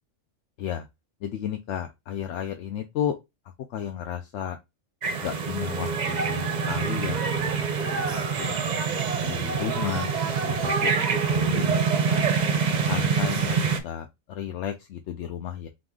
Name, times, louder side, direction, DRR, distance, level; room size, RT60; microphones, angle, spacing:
voice 1, 1.2-3.2 3.7-4.6 5.2-7.4 7.8-8.6 9.2-10.1 10.5-12.3 12.9-15.7, left 9 dB, 70° left, 0.8 m, -33 dB
sound 1, 5.0-13.8, right 5 dB, 45° right, 0.6 m, -25 dB
3.9 x 2.9 x 3.6 m
omnidirectional pair, 1.4 m